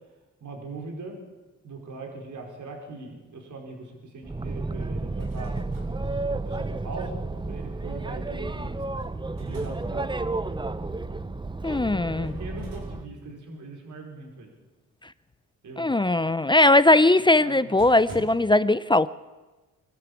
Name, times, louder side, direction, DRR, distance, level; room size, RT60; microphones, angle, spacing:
voice 1, 0.4-1.2 1.6-8.8 9.4-10.2 11.8-14.5 15.6-16.1 17.4-18.0, right 3 dB, 65° right, 5.0 m, -41 dB
Boat Water vehicle, 4.2-13.1, right 2 dB, 15° right, 0.9 m, -32 dB
sound 1, 5.0-5.9 8.6-10.1 12.2-12.9 13.2-13.4 17.2-17.3 17.8-18.3, right 2 dB, 80° right, 4.7 m, -45 dB
voice 2, 11.6-12.3 15.8-19.1, left 2 dB, 15° left, 0.7 m, -19 dB
24.5 x 13.0 x 8.6 m
cardioid pair, 70°, 33 cm